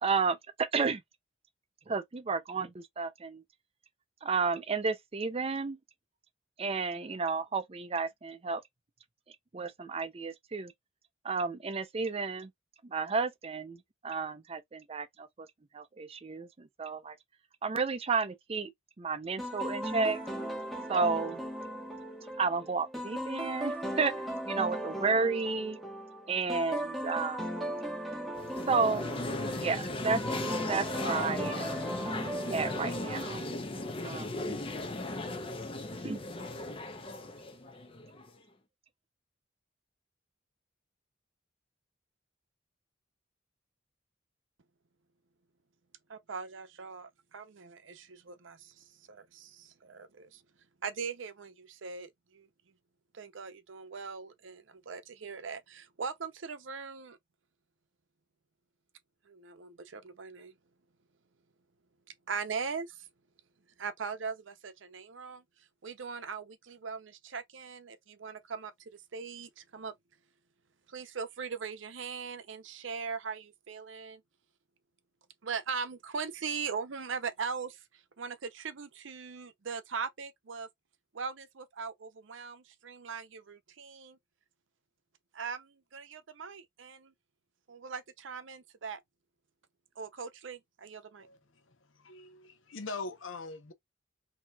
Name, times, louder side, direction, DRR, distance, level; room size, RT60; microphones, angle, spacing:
voice 1, 0.0-1.0 1.9-3.4 4.2-5.8 6.6-8.6 9.5-10.7 11.2-12.5 12.9-13.8 14.0-15.5 15.7-17.1 17.6-18.7 19.0-20.2 20.9-21.4 22.4-24.1 24.5-25.8 26.3-27.5 28.7-29.0 29.6-30.2 30.7-31.7 32.5-33.5 34.0-34.3 35.3-35.4 36.0-36.2, right 4 dB, 30° right, 0.5 m, -32 dB
sound 1, 19.4-33.6, right 1 dB, ahead, 1.1 m, -38 dB
sound 2, 28.4-38.4, left 2 dB, 30° left, 0.6 m, -36 dB
voice 2, 46.1-50.4 50.8-52.5 53.1-57.2 59.3-60.5 62.3-63.1 63.8-65.4 65.8-69.9 70.9-74.2 75.4-80.7 81.1-84.2 85.3-87.1 87.7-89.0 90.0-91.3, right 5 dB, 75° right, 0.6 m, -40 dB
voice 3, 91.2-93.7, left 3 dB, 85° left, 0.8 m, -43 dB
4.4 x 2.8 x 2.3 m
head